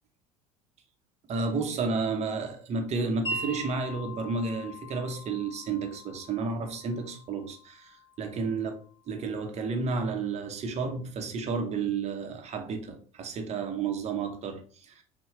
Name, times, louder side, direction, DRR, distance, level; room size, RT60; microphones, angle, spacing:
voice 1, 1.3-8.7 9.1-15.0, right 4 dB, 40° right, 0.9 m, -31 dB
Wind chime, 3.2-9.3, equal, 25° left, 1.7 m, -42 dB
5.5 x 2.3 x 3.1 m
figure-of-eight pair, 65°, 18 cm